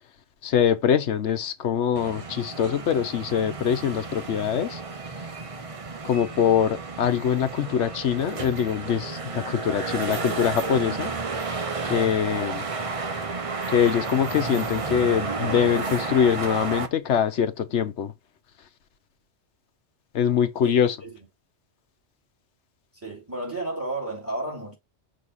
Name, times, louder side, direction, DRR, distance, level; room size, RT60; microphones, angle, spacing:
voice 1, 0.4-4.8 6.0-11.1 11.9-12.6 13.7-18.1 20.1-21.0, left 8 dB, 85° left, 1.1 m, -23 dB
sound 1, 2.0-16.9, right 4 dB, 35° right, 0.7 m, -32 dB
voice 2, 20.6-21.1 22.9-24.8, right 2 dB, 10° right, 2.8 m, -32 dB
6.4 x 2.9 x 5.5 m
omnidirectional pair, 1.2 m